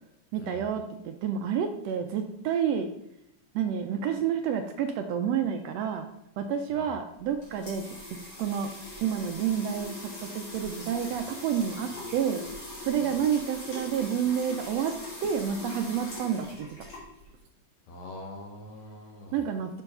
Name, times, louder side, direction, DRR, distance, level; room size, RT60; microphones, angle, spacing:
voice 1, 0.3-2.9 3.5-6.1 6.4-7.8 8.4-12.4 12.8-14.9 15.2-16.7 19.3-19.8, right 8 dB, 80° right, 6 dB, 1.5 m, -29 dB
sound 1, 7.1-17.4, left 2 dB, 50° left, 3.7 m, -42 dB
voice 2, 17.9-19.4, left 1 dB, 70° left, 2 dB, 2.1 m, -44 dB
7.0 x 4.5 x 5.4 m, 0.78 s
omnidirectional pair, 3.5 m